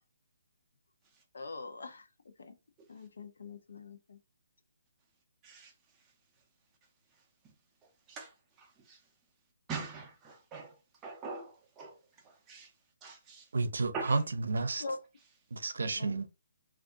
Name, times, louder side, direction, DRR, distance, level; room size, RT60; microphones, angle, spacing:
voice 1, 1.3-2.1 2.4-2.5 2.9-4.2 14.8-15.0 16.0-16.2, left 3 dB, 65° left, 0.7 m, -43 dB
voice 2, 9.7-10.7 11.0-11.9 12.5-12.7 13.0-13.4 13.9-14.2, right 4 dB, 10° right, 0.5 m, -42 dB
voice 3, 13.5-14.8 15.5-16.3, right 3 dB, 70° right, 0.6 m, -31 dB
2.6 x 2.5 x 3.6 m
hypercardioid pair, 175°, 0 cm